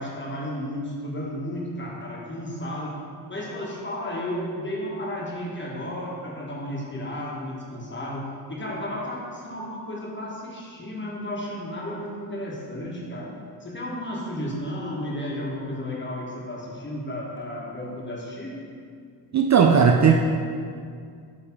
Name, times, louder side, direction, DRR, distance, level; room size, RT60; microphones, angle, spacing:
voice 1, 0.0-2.9 3.3-13.3 13.6-18.6, left 1 dB, 25° left, -3 dB, 1.4 m, -33 dB
voice 2, 19.3-20.1, right 6 dB, 40° right, 2 dB, 0.4 m, -16 dB
7.4 x 3.2 x 4.5 m, 2.2 s
cardioid pair, 85°, 43 cm